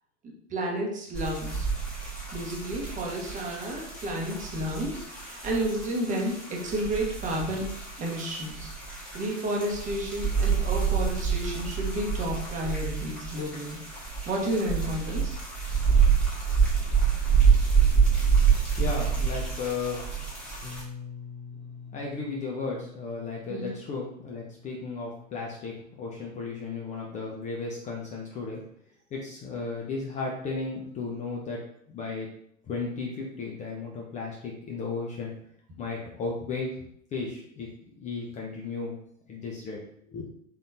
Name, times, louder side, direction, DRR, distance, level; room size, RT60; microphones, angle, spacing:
voice 1, 0.2-1.7 2.3-8.7 9.1-13.8 14.3-15.4 23.5-23.7, right 1 dB, 20° right, -1 dB, 0.9 m, -31 dB
sound 1, 1.1-20.8, right 6 dB, 5° left, 1.5 m, -27 dB
voice 2, 18.8-20.0 21.9-28.6 29.1-31.6 31.9-32.3 32.7-35.3 35.8-36.7 37.1-38.9 39.3-40.3, left 4 dB, 20° left, -2 dB, 0.6 m, -34 dB
Bass guitar, 20.6-26.9, left 6 dB, 35° left, 1.2 m, -46 dB
3.8 x 3.5 x 2.7 m, 0.69 s
figure-of-eight pair, 90°, 38 cm